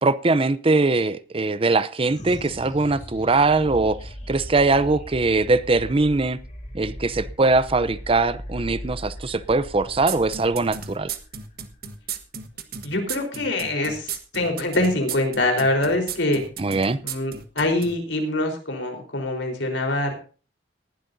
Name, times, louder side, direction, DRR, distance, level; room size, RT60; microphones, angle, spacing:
voice 1, 0.0-6.4 6.7-11.1 16.6-17.0, right 3 dB, 30° right, 16 dB, 0.6 m, -21 dB
sound 1, 2.1-12.7, equal, 40° left, 2.5 m, -38 dB
sound 2, 10.1-17.9, right 8 dB, 55° right, 1.4 m, -34 dB
voice 2, 12.8-16.4 17.0-20.1, left 2 dB, 80° left, 3 dB, 4.0 m, -24 dB
19.5 x 11.5 x 2.7 m, 0.37 s
head